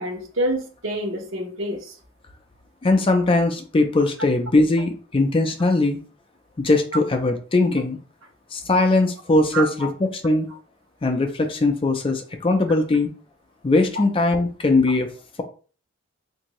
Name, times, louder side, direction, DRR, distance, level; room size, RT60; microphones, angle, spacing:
voice 1, 0.0-1.9 9.5-9.6, right 1 dB, 70° right, 1 dB, 1.0 m, -27 dB
voice 2, 2.8-6.0 6.6-8.0 8.5-10.5 11.0-13.1 13.6-15.1, left 2 dB, 25° left, 5 dB, 0.4 m, -20 dB
3.5 x 2.6 x 3.0 m, 0.39 s
head